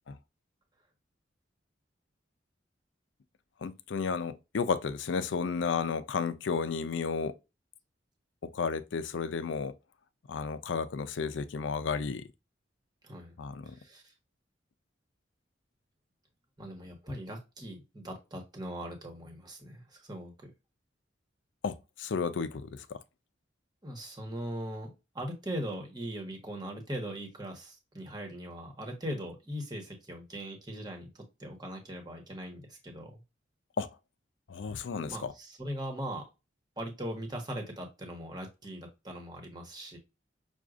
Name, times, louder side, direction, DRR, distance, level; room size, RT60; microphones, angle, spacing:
voice 1, 3.6-7.4 8.4-9.7 10.3-12.3 13.4-13.8 21.6-23.0 33.8-34.0 34.5-35.3, left 5 dB, 80° left, 0.5 m, -33 dB
voice 2, 13.0-13.4 13.6-14.1 16.6-20.5 23.8-33.2 35.1-36.2 36.8-40.0, equal, 20° right, 1.1 m, -40 dB
6.1 x 2.3 x 2.5 m
head